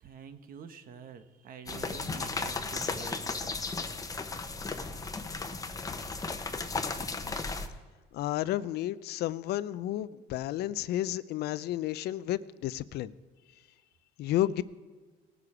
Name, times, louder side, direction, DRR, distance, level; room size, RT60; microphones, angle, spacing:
voice 1, 0.0-3.6, right 7 dB, 55° right, 10 dB, 1.0 m, -47 dB
sound 1, 1.7-7.7, left 3 dB, 20° left, 0.9 m, -35 dB
voice 2, 8.1-13.1 14.2-14.6, left 13 dB, 75° left, 17 dB, 0.5 m, -32 dB
19.0 x 6.8 x 4.9 m, 1.4 s
cardioid pair, 110°, 17 cm